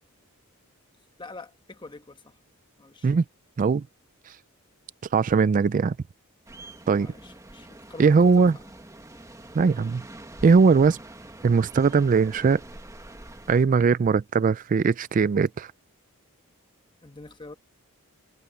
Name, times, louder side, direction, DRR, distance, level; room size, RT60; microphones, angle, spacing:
voice 1, 1.2-2.4 2.8-3.1 7.0-8.7 17.0-17.5, left 3 dB, 20° left, 1.2 m, -45 dB
voice 2, 5.1-6.0 6.9-7.1 8.0-8.6 9.5-10.0 10.4-11.0 11.4-12.6 13.5-15.7, right 5 dB, 35° right, 0.3 m, -20 dB
sound 1, 6.5-13.7, right 1 dB, 15° right, 1.4 m, -45 dB
head